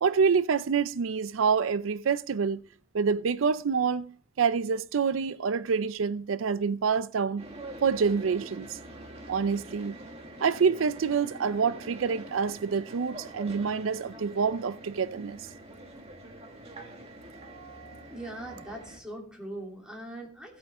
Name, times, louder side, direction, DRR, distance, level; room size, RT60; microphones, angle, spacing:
voice 1, 0.0-2.6 2.9-4.0 4.4-7.4 7.8-8.8 9.3-10.0 10.4-15.4, right 6 dB, 90° right, 0.4 m, -27 dB
sound 1, 7.4-19.0, right 1 dB, 30° right, 1.7 m, -45 dB
voice 2, 18.1-20.6, right 1 dB, 5° right, 3.1 m, -41 dB
16.0 x 8.5 x 3.6 m
head